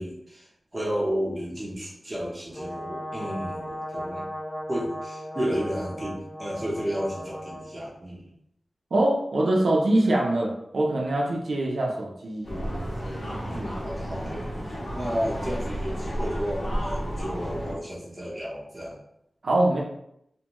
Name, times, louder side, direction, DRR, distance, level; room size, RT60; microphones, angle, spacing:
voice 1, 0.0-4.2 4.7-8.3 13.5-14.5 14.9-19.0, equal, 25° right, -5 dB, 0.8 m, -32 dB
Brass instrument, 2.5-7.7, equal, 20° left, 0.6 m, -36 dB
voice 2, 8.9-12.5 19.4-19.8, right 1 dB, 85° right, -2 dB, 0.4 m, -23 dB
sound 1, 12.4-17.7, equal, 65° left, 1.2 m, -32 dB
2.6 x 2.2 x 2.9 m, 0.78 s
wide cardioid pair, 95°, 0 cm